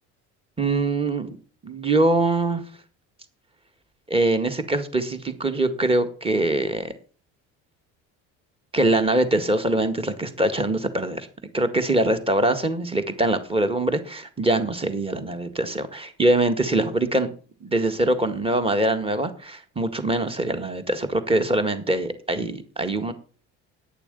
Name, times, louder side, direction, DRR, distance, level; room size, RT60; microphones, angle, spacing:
voice 1, 0.6-1.4 1.6-2.6 4.1-6.9 8.7-11.3 11.5-17.3 17.6-23.1, right 2 dB, 15° right, 8 dB, 1.8 m, -23 dB
9.9 x 6.9 x 7.0 m, 0.40 s
supercardioid pair, 85°, 33 cm